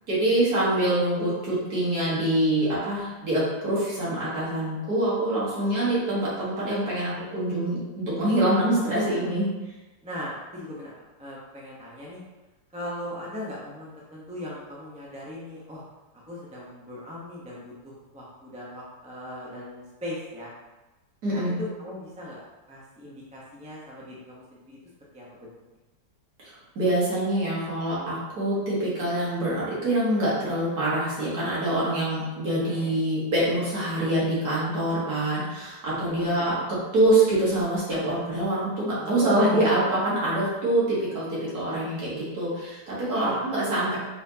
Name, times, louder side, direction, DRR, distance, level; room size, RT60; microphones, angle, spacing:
voice 1, 0.1-9.5 21.2-21.6 26.4-44.0, right 1 dB, 55° right, -8 dB, 2.1 m, -25 dB
voice 2, 8.7-9.3 10.0-10.9 11.2-12.2 12.7-15.8 16.3-20.5 21.3-22.4 22.7-24.8 25.1-25.5 32.7-33.0 36.0-36.5 39.0-39.9 43.1-43.5, left 1 dB, 10° right, -5 dB, 0.3 m, -39 dB
4.4 x 4.3 x 2.8 m, 1.1 s
omnidirectional pair, 2.0 m